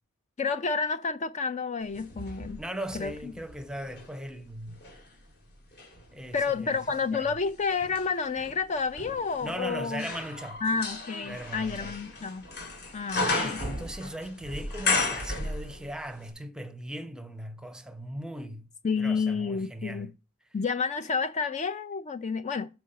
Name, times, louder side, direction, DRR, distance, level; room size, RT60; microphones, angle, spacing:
voice 1, 0.4-2.6 2.9-3.3 6.3-10.0 10.6-12.4 12.9-13.6 18.8-20.1 20.5-22.7, left 5 dB, 30° left, 0.4 m, -30 dB
sound 1, 1.9-4.1 4.7-16.0 16.3-16.4, left 3 dB, 50° left, 2.8 m, -35 dB
voice 2, 2.6-4.8 6.1-6.8 7.1-7.4 9.4-10.6 11.2-12.0 13.1-18.7 19.0-20.1, right 1 dB, 5° right, 0.8 m, -38 dB
7.0 x 4.6 x 6.5 m
head